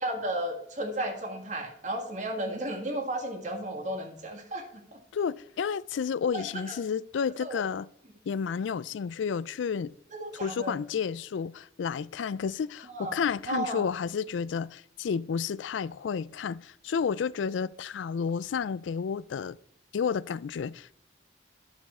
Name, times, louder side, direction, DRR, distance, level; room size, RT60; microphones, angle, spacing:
voice 1, 0.0-4.6 6.3-6.4 7.4-7.6 10.1-10.7 12.9-13.2 13.5-13.8, right 1 dB, 40° right, 1.7 m, -33 dB
voice 2, 5.1-7.9 8.3-9.9 10.3-19.6 19.9-20.9, left 6 dB, 80° left, 0.4 m, -31 dB
11.5 x 7.1 x 4.2 m
head